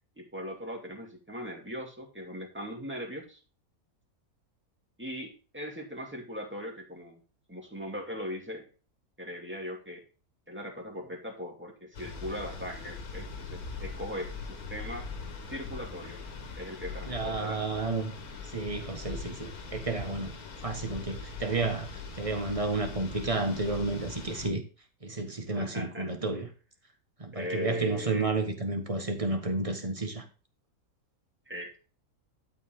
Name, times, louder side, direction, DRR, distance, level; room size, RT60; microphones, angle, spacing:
voice 1, 0.2-3.4 5.0-7.2 7.5-8.7 9.2-10.0 10.5-15.1 15.5-16.2 16.6-17.8 25.5-26.1 27.3-28.3 31.5-31.8, equal, 10° right, 2.4 m, -39 dB
sound 1, 11.9-24.5, left 4 dB, 75° left, 1.9 m, -41 dB
voice 2, 17.1-18.1 18.5-20.3 20.6-24.6 25.0-26.5 27.2-30.2, right 3 dB, 25° right, 1.5 m, -31 dB
12.0 x 5.0 x 3.7 m
omnidirectional pair, 1.6 m